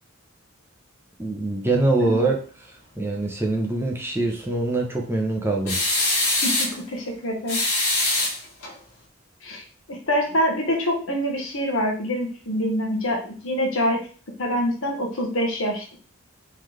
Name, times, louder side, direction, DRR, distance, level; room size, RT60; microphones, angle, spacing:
voice 1, 1.2-5.8, right 2 dB, 10° right, 0 dB, 0.6 m, -24 dB
sound 1, 5.7-6.8 7.5-8.7, left 2 dB, 85° left, 1.2 m, -23 dB
voice 2, 6.4-7.6 9.4-14.1 14.4-15.9, equal, 70° left, 2 dB, 1.1 m, -25 dB
3.8 x 3.3 x 3.2 m, 0.41 s
head